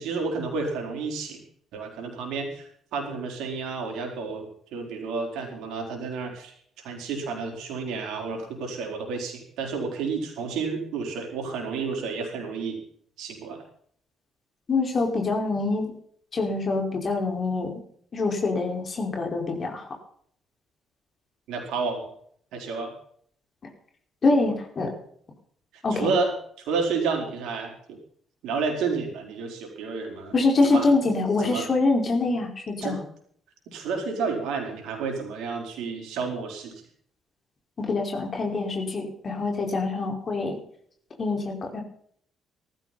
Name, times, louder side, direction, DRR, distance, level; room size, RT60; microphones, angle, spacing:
voice 1, 0.0-1.4 1.7-6.5 6.8-12.8 13.2-13.6 21.5-22.1 22.5-22.9 25.9-28.0 28.4-30.3 30.6-30.9 31.4-31.7 32.8-33.0 33.7-36.8, right 4 dB, 65° right, 2 dB, 4.5 m, -30 dB
voice 2, 14.7-16.0 16.3-17.7 18.1-20.0 24.2-24.9 25.8-26.1 30.3-33.0 37.8-40.6 41.2-41.8, left 3 dB, 40° left, 1 dB, 5.2 m, -25 dB
19.0 x 14.5 x 4.4 m, 0.62 s
figure-of-eight pair, 45°, 0 cm